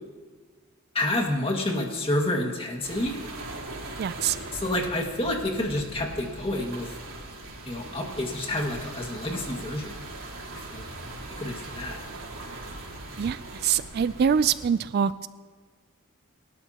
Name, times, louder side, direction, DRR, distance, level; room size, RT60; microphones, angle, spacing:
voice 1, 0.9-3.2 4.5-6.9 7.7-9.9 10.7-10.9 11.4-12.0, left 1 dB, 25° left, 1 dB, 1.9 m, -29 dB
sound 1, 2.8-14.7, right 2 dB, 65° right, 4.0 m, -40 dB
voice 2, 4.0-4.4 13.2-15.3, right 7 dB, 45° right, 15 dB, 0.3 m, -25 dB
28.0 x 12.5 x 2.9 m, 1.5 s
head